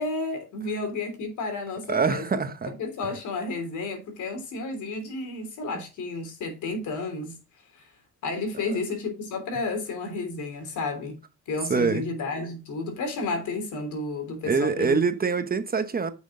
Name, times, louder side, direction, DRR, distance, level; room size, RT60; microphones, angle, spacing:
voice 1, 0.0-2.2 2.7-7.4 7.7-7.9 8.2-11.2 11.5-15.0, left 3 dB, 80° left, 3.4 m, -32 dB
voice 2, 1.9-2.7 11.7-12.1 14.5-16.1, right 5 dB, 30° right, 1.0 m, -24 dB
8.9 x 6.3 x 3.7 m
cardioid pair, 90°, 30 cm